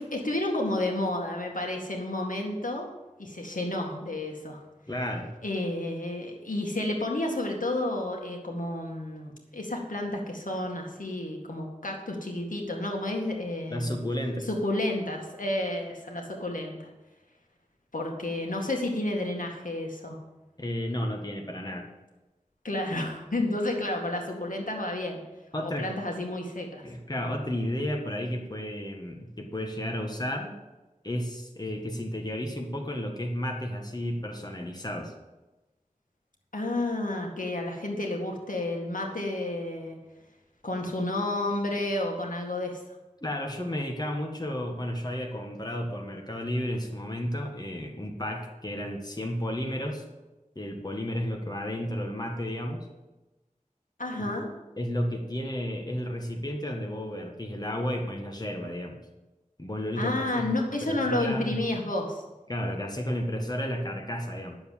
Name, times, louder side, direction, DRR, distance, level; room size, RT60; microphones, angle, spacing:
voice 1, 0.0-2.9 3.2-4.6 5.4-14.0 14.4-16.9 17.9-20.2 22.6-25.2 25.6-26.8 36.5-40.0 40.6-42.8 54.0-54.5 60.0-62.2, left 1 dB, 80° left, 1 dB, 2.0 m, -31 dB
voice 2, 4.9-5.3 13.7-14.5 20.6-21.9 25.5-25.9 26.8-30.6 31.0-35.1 43.2-50.0 50.5-52.9 54.1-54.4 54.8-59.0 59.6-60.5 60.8-61.6 62.5-64.6, equal, 30° left, 2 dB, 1.7 m, -32 dB
11.0 x 7.2 x 7.4 m, 1.1 s
wide cardioid pair, 50°, 14 cm